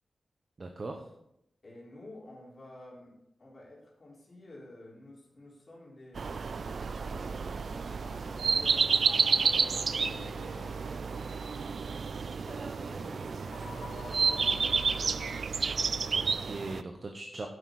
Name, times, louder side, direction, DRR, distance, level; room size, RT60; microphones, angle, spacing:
voice 1, 0.6-1.1 16.1-17.5, right 2 dB, 35° right, 4 dB, 1.0 m, -40 dB
voice 2, 1.6-10.4 12.5-15.2, left 1 dB, 35° left, -4 dB, 3.6 m, -52 dB
sound 1, 6.2-16.8, right 5 dB, 60° right, 0.4 m, -30 dB
sound 2, 6.7-15.4, left 5 dB, 80° left, 0.6 m, -49 dB
10.0 x 7.8 x 4.8 m, 0.78 s
wide cardioid pair, 155°, 0 cm